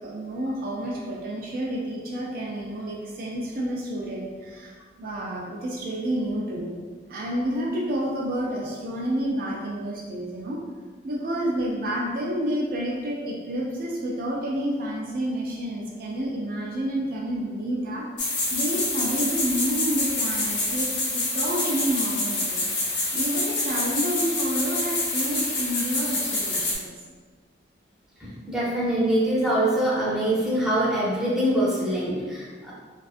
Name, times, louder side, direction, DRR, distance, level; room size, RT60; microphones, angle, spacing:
voice 1, 0.0-6.8 7.1-10.6 11.0-18.1 18.5-22.7 23.1-26.9, right 1 dB, 50° right, -3 dB, 0.3 m, -29 dB
sound 1, 18.2-26.7, left 2 dB, 65° left, 0.7 m, -27 dB
voice 2, 28.2-32.7, right 1 dB, 5° right, -8 dB, 0.6 m, -24 dB
2.4 x 2.3 x 2.4 m, 1.5 s
head